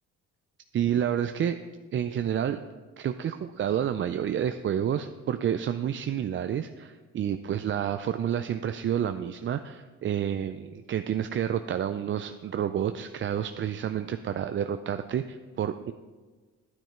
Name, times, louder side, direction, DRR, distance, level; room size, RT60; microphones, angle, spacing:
voice 1, 0.7-1.6 1.9-2.6 3.0-15.9, right 9 dB, 40° right, 9 dB, 0.4 m, -29 dB
9.6 x 9.1 x 4.4 m, 1.4 s
cardioid pair, 90°, 30 cm